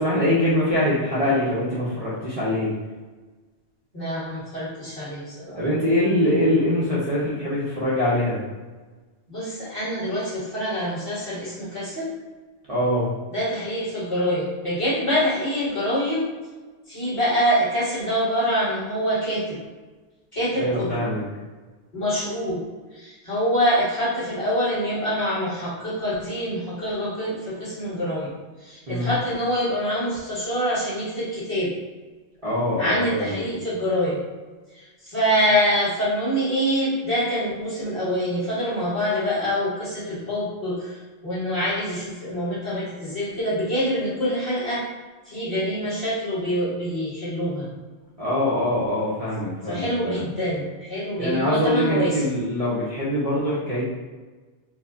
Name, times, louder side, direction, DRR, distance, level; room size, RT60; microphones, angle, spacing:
voice 1, 0.0-2.7 5.6-8.4 12.7-13.1 20.6-21.2 28.9-29.1 32.4-33.4 48.2-50.3 51.2-53.9, left 1 dB, 40° right, -9 dB, 0.7 m, -23 dB
voice 2, 3.9-5.6 9.3-12.1 13.3-16.3 16.9-19.6 20.3-21.0 21.9-22.6 22.9-28.3 28.6-31.7 32.8-34.2 35.0-41.0 41.2-44.8 45.3-47.7 49.7-52.4, equal, 30° left, -11 dB, 1.6 m, -25 dB
4.3 x 2.0 x 2.6 m, 1.3 s
omnidirectional pair, 1.1 m